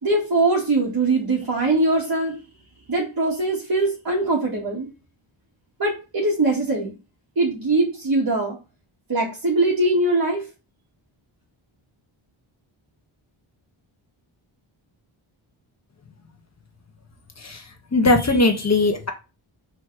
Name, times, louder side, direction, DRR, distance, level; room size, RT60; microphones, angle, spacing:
voice 1, 0.0-2.3 2.9-4.9 5.8-6.9 7.4-8.6 9.1-10.4, right 2 dB, 45° right, -4 dB, 2.6 m, -21 dB
voice 2, 17.9-19.1, left 2 dB, 30° left, 4 dB, 1.7 m, -19 dB
5.9 x 4.7 x 5.0 m, 0.31 s
wide cardioid pair, 100°, 50 cm